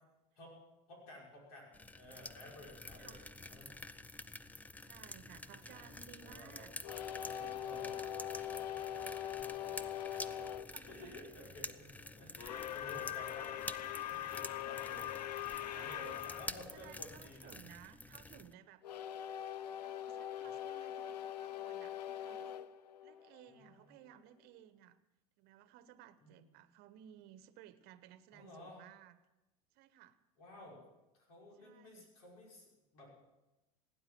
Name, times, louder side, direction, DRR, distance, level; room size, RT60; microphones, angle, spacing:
voice 1, 0.9-3.2 3.5-3.7 5.5-5.9 6.2-6.7 7.2-8.1 10.2-15.1 15.7-17.6 23.5-24.0 26.2-26.5 28.3-28.8 30.4-30.8 31.3-33.1, left 1 dB, 70° left, -2 dB, 5.6 m, -54 dB
sound 1, 1.7-18.5, left 2 dB, 10° left, 0.6 m, -49 dB
voice 2, 2.9-3.3 4.8-6.7 10.1-10.3 10.7-11.1 15.6-16.2 16.7-18.8 19.8-22.6 23.0-25.0 25.4-29.2 29.7-30.2 31.6-32.1, right 11 dB, 55° right, 14 dB, 1.1 m, -58 dB
sound 2, 6.8-10.7 12.4-16.5 18.8-23.7, left 11 dB, 90° left, 0.6 m, -42 dB
17.5 x 9.7 x 7.7 m, 1.0 s
hypercardioid pair, 95°, 20 cm